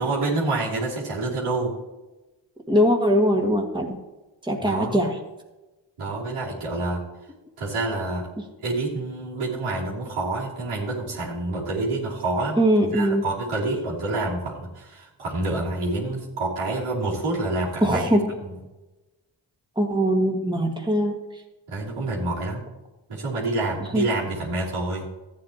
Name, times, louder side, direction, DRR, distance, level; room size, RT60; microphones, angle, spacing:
voice 1, 0.0-1.7 4.6-5.0 6.0-7.0 7.6-8.3 8.6-18.2 18.5-18.6 21.7-22.7 23.1-25.1, right 2 dB, 85° right, -5 dB, 3.2 m, -27 dB
voice 2, 2.7-4.0 4.4-5.2 12.6-13.3 17.8-18.3 19.7-21.2 23.9-24.1, equal, 10° right, 1 dB, 1.8 m, -21 dB
14.0 x 8.6 x 2.9 m, 1.1 s
cardioid pair, 50°, 49 cm